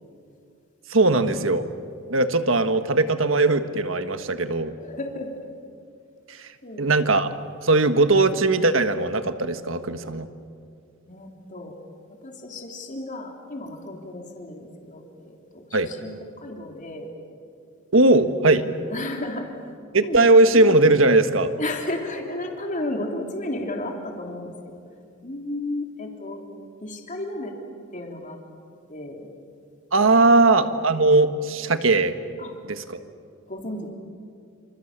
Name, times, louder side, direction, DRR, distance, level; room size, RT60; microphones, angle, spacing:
voice 1, 0.9-1.7 2.1-4.7 6.3-6.5 6.8-7.3 7.6-10.3 15.7-15.9 17.9-18.7 19.9-21.5 29.9-32.1 32.7-33.0, right 2 dB, 70° right, 9 dB, 1.5 m, -19 dB
voice 2, 4.8-5.5 6.6-6.9 11.1-11.7 12.2-16.1 16.4-17.1 18.1-18.4 18.9-19.5 20.0-20.3 21.6-24.8 25.2-26.4 26.8-27.5 27.9-28.4 28.9-29.2 30.2-30.6 32.4-32.5 33.5-33.9, left 1 dB, 40° left, 2 dB, 3.4 m, -33 dB
28.0 x 28.0 x 7.4 m, 2.4 s
head